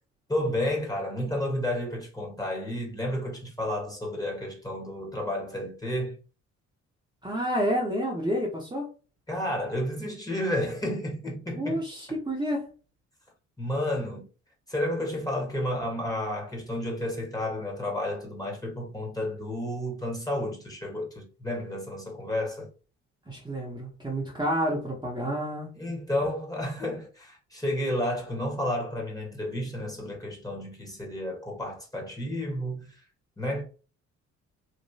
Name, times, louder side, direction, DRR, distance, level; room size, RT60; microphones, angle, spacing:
voice 1, 0.3-6.2 9.3-11.8 13.6-14.2 14.7-22.7 25.8-33.0 33.4-33.6, left 1 dB, 10° left, 1.5 m, -31 dB
voice 2, 7.2-8.9 11.5-12.7 23.3-25.8, equal, 15° right, 1.1 m, -29 dB
3.1 x 2.9 x 2.8 m
cardioid pair, 90°, 30 cm